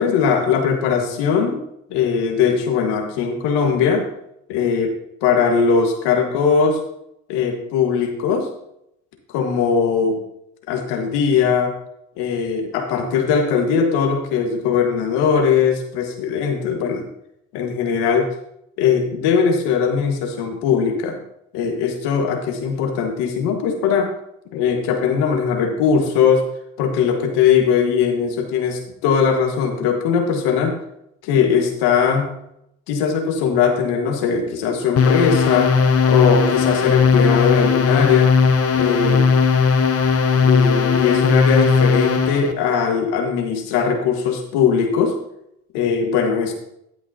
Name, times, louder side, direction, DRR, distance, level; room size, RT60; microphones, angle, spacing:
voice 1, 0.0-1.6 1.9-4.1 4.5-4.9 5.2-6.8 7.3-8.5 9.3-10.2 10.7-11.7 12.2-17.0 17.5-18.3 18.8-21.2 21.5-24.1 24.5-26.5 26.8-30.8 31.2-32.3 32.9-35.7 36.1-38.3 38.7-39.2 40.3-45.1 45.7-46.5, left 6 dB, 75° left, 3 dB, 1.6 m, -19 dB
sound 1, 35.0-42.5, left 5 dB, 35° left, 1.0 m, -17 dB
12.5 x 8.6 x 2.8 m, 0.80 s
hypercardioid pair, 60°, 40 cm